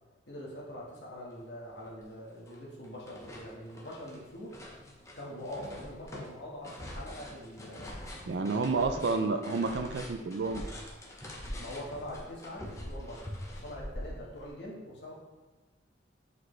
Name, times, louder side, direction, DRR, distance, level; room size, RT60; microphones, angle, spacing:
voice 1, 0.3-4.6 5.1-8.0 8.4-9.5 11.6-15.1, left 1 dB, 65° left, -3 dB, 1.6 m, -43 dB
sound 1, 1.4-1.5 1.8-2.6 2.8-14.5, left 1 dB, 15° left, 0.8 m, -44 dB
voice 2, 8.3-10.6, right 4 dB, 65° right, 8 dB, 0.4 m, -30 dB
7.6 x 4.1 x 3.3 m, 1.2 s
head